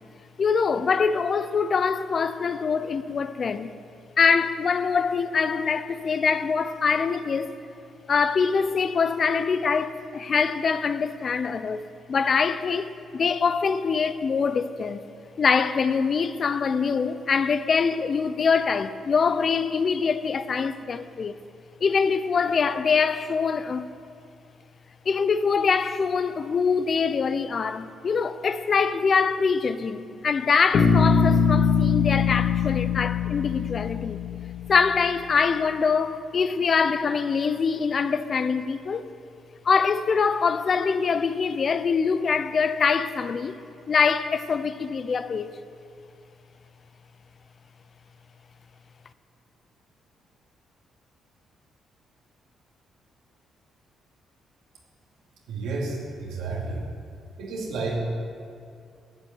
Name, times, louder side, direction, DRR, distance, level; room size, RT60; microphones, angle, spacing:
voice 1, 0.4-3.7 4.2-7.6 8.1-11.8 12.1-15.0 15.4-21.3 21.8-23.9 25.1-34.2 34.7-39.0 39.6-43.6 43.9-45.5, left 5 dB, 45° left, 0.6 m, -24 dB
Bass guitar, 30.7-34.8, left 6 dB, 65° left, 1.4 m, -22 dB
voice 2, 55.5-56.8 57.4-58.0, right 3 dB, 90° right, 2.7 m, -31 dB
11.5 x 8.8 x 7.8 m
cardioid pair, 90°, 0 cm